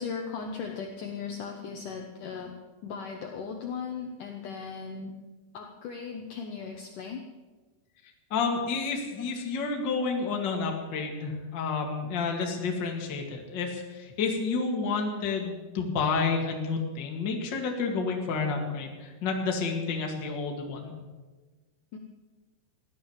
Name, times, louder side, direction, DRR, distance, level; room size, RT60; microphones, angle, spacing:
voice 1, 0.0-2.5 2.8-5.2 5.5-7.2 9.2-9.3 21.9-22.0, left 5 dB, 80° left, 2 dB, 1.8 m, -37 dB
voice 2, 8.3-20.9, left 4 dB, 45° left, 1 dB, 1.4 m, -30 dB
15.5 x 11.5 x 7.2 m, 1.3 s
omnidirectional pair, 5.4 m